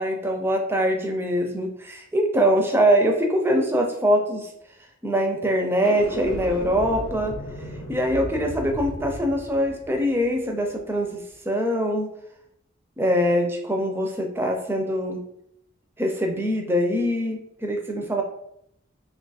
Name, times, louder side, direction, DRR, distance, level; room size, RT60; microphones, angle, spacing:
voice 1, 0.0-4.5 5.0-7.3 7.9-12.1 13.0-15.2 16.0-18.2, equal, 10° right, 2 dB, 0.4 m, -23 dB
sound 1, 5.7-11.0, left 1 dB, 75° left, 0.6 m, -36 dB
2.8 x 2.3 x 4.0 m, 0.75 s
head